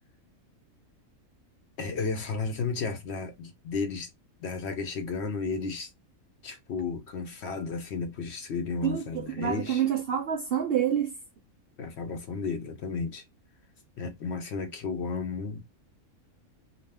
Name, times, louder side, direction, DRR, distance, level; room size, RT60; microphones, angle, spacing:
voice 1, 1.8-4.1 4.4-5.9 6.4-9.9 11.8-13.2 14.0-15.6, left 4 dB, 60° left, 0.8 m, -33 dB
voice 2, 8.8-11.1, right 9 dB, 65° right, 0.6 m, -27 dB
2.5 x 2.3 x 3.2 m
omnidirectional pair, 1.4 m